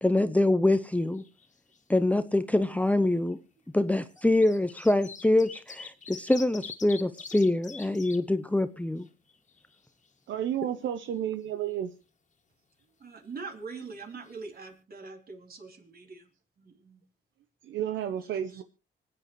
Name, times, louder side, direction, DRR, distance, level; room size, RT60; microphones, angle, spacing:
voice 1, 0.0-1.2 1.9-3.4 3.7-9.1, left 1 dB, 5° left, 0.7 m, -25 dB
sound 1, 0.7-1.5 1.7-1.8 2.9-3.1 4.0-8.2 8.6-8.7 9.0-10.1 13.9-14.0 14.3-14.4, left 5 dB, 35° left, 2.1 m, -45 dB
voice 2, 10.3-11.9 17.6-18.6, right 10 dB, 70° right, 0.9 m, -31 dB
voice 3, 13.0-16.3 16.6-17.0 18.5-18.6, right 4 dB, 50° right, 3.6 m, -43 dB
25.5 x 8.9 x 3.1 m
cardioid pair, 90°, 20 cm